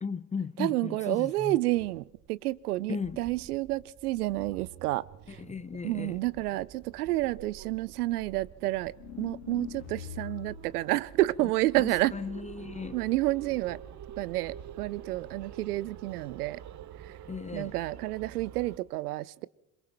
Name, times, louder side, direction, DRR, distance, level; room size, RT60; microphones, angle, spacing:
voice 1, 0.0-1.6 2.9-3.2 5.3-6.2 11.8-13.0 17.3-17.8, left 5 dB, 15° left, 0.6 m, -36 dB
voice 2, 0.6-2.0 2.3-5.0 5.8-8.9 9.2-12.1 12.9-13.8 14.2-16.6 17.5-19.5, right 17 dB, 80° right, 0.7 m, -29 dB
sound 1, 1.6-18.8, right 10 dB, 40° right, 1.2 m, -48 dB
sound 2, 8.9-10.8, left 11 dB, 65° left, 2.4 m, -42 dB
27.0 x 22.5 x 4.5 m
hypercardioid pair, 70°, 45 cm